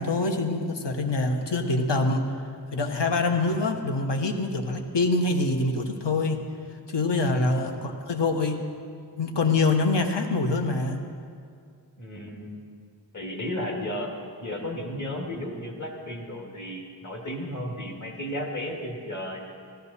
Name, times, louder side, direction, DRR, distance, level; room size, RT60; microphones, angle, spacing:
voice 1, 0.0-2.2 2.7-6.4 6.9-8.6 9.2-11.0, left 3 dB, 70° left, 5 dB, 1.1 m, -25 dB
voice 2, 7.2-7.6 12.0-12.6 13.1-14.1 14.4-19.5, left 1 dB, 40° left, 0 dB, 2.2 m, -34 dB
15.0 x 13.0 x 4.2 m, 2.2 s
wide cardioid pair, 70°, 44 cm